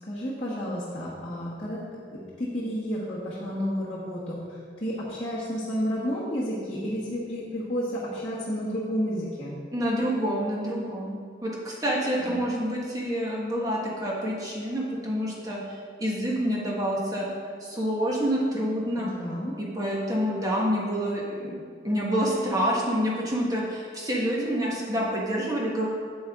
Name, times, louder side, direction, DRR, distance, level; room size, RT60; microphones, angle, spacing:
voice 1, 0.1-1.8 2.1-9.6 12.2-12.4 19.0-19.6, equal, 30° left, -10 dB, 1.3 m, -31 dB
voice 2, 9.7-11.2 11.4-17.3 17.6-19.1 19.6-25.9, equal, 20° right, -4 dB, 1.4 m, -27 dB
8.5 x 7.7 x 3.6 m, 2.1 s
head